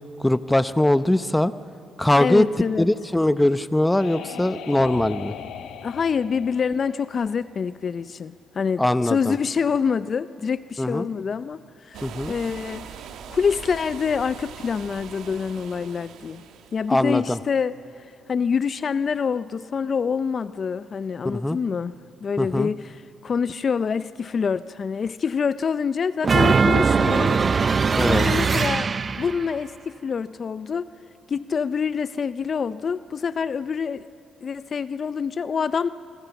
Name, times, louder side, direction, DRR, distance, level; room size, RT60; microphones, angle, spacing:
voice 1, 0.2-1.5 2.0-2.4 2.8-5.4 8.8-9.4 10.8-11.1 12.0-12.3 16.9-17.4 21.2-21.6 22.4-22.7 28.0-28.2, left 1 dB, 10° left, 14 dB, 0.8 m, -21 dB
voice 2, 2.2-2.9 5.8-12.9 13.3-16.4 16.7-21.9 22.2-27.4 28.0-28.9 29.2-30.8 31.3-34.1 34.4-35.9, left 6 dB, 45° left, 15 dB, 0.5 m, -26 dB
sound 1, 3.3-7.9, left 9 dB, 75° left, 1.1 m, -39 dB
sound 2, 11.9-17.0, right 7 dB, 80° right, 1.6 m, -41 dB
sound 3, 26.2-29.4, right 5 dB, 35° right, 0.7 m, -20 dB
26.5 x 26.0 x 7.1 m, 2.7 s
cardioid pair, 90°, 0 cm